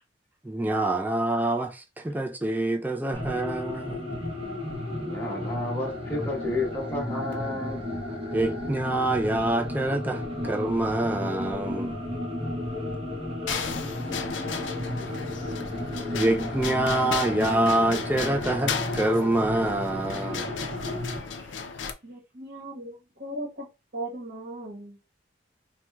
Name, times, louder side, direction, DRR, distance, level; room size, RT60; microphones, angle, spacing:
voice 1, 0.4-4.2 8.3-12.0 16.1-20.5, right 1 dB, 10° right, 0.3 m, -26 dB
sound 1, 3.1-21.2, left 1 dB, 30° right, 0.8 m, -33 dB
voice 2, 4.9-7.8 15.0-15.2 21.4-21.7, left 2 dB, 10° left, 1.1 m, -32 dB
sound 2, 13.5-21.9, left 5 dB, 75° left, 0.5 m, -34 dB
voice 3, 22.0-23.7 23.9-25.0, right 1 dB, 55° right, 1.1 m, -37 dB
4.3 x 2.2 x 2.2 m
head